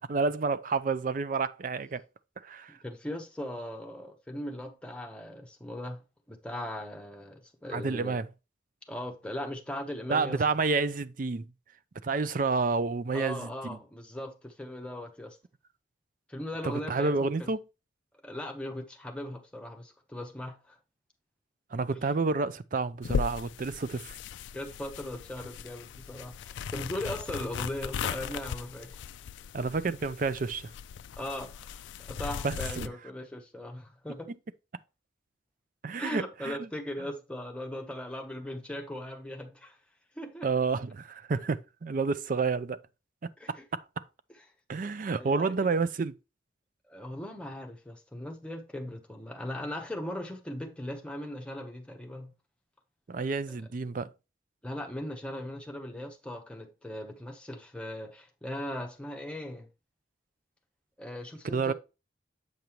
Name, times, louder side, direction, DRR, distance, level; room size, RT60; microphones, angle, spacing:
voice 1, 0.1-2.0 2.4-2.8 7.7-8.3 10.1-11.5 12.0-13.8 16.6-17.6 21.7-24.2 29.5-30.7 32.4-32.9 35.8-36.6 40.4-42.8 43.2-43.8 44.7-46.2 53.1-54.1 61.4-61.7, right 4 dB, 45° right, 0.4 m, -29 dB
voice 2, 2.8-6.0 6.3-8.2 8.9-10.4 13.1-15.4 16.3-17.5 18.2-20.8 21.9-22.1 24.5-29.1 31.2-34.3 36.0-39.8 40.2-40.5 43.4-43.6 45.2-45.5 46.9-52.3 53.5-53.6 54.6-59.7 61.0-61.7, left 1 dB, 5° left, 0.9 m, -39 dB
sound 1, 23.0-32.9, left 7 dB, 75° left, 0.3 m, -38 dB
7.9 x 5.3 x 3.0 m
head